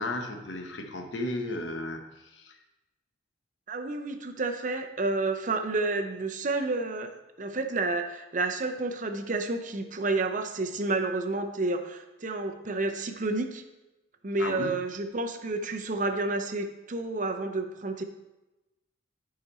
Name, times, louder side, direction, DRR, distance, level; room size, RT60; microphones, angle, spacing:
voice 1, 0.0-2.6 14.4-14.7, left 2 dB, 70° left, 4 dB, 1.0 m, -34 dB
voice 2, 3.7-7.1 7.4-13.6 14.2-18.0, right 3 dB, 40° right, 5 dB, 0.6 m, -30 dB
10.0 x 5.0 x 4.2 m, 1.0 s
head